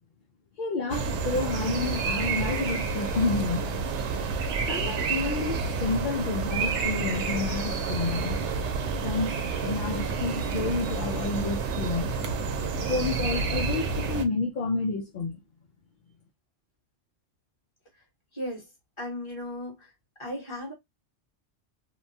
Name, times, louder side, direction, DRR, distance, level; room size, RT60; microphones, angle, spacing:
voice 1, 0.6-3.7 4.7-8.4 9.0-12.1 12.9-15.4, left 4 dB, 60° left, 0.6 m, -30 dB
sound 1, 0.9-14.2, right 4 dB, 90° right, 0.9 m, -29 dB
voice 2, 18.3-18.7 19.0-19.7 20.2-20.7, left 1 dB, 25° left, 1.4 m, -35 dB
2.8 x 2.2 x 2.6 m
omnidirectional pair, 1.2 m